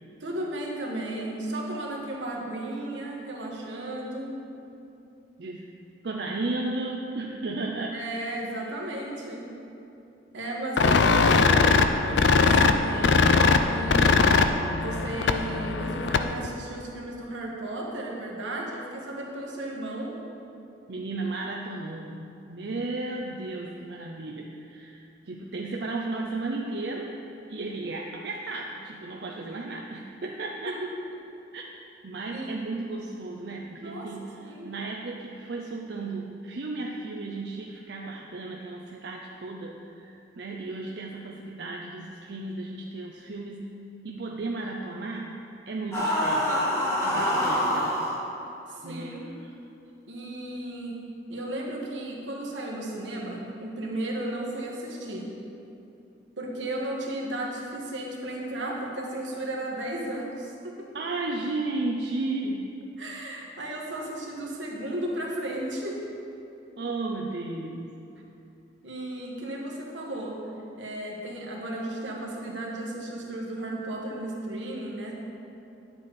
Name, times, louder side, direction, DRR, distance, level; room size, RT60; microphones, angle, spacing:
voice 1, 0.2-4.3 7.9-9.5 10.3-11.4 12.0-14.2 14.8-20.2 30.6-30.9 32.2-32.6 33.8-34.7 48.7-49.4 50.1-51.0 51.3-55.3 56.4-60.7 63.0-66.0 68.8-70.4 70.8-75.2, right 1 dB, 85° right, -2 dB, 1.6 m, -34 dB
voice 2, 6.0-8.0 10.8-11.0 20.9-27.1 27.5-30.8 31.5-31.7 32.0-43.7 44.0-45.4 45.7-46.7 47.0-48.0 48.8-49.2 60.9-62.6 66.8-68.0, right 2 dB, 60° right, 0 dB, 0.5 m, -34 dB
sound 1, 10.8-16.5, left 4 dB, 70° left, 0.4 m, -21 dB
sound 2, 45.9-48.1, equal, 15° left, 2.0 m, -25 dB
9.7 x 7.9 x 4.2 m, 2.8 s
head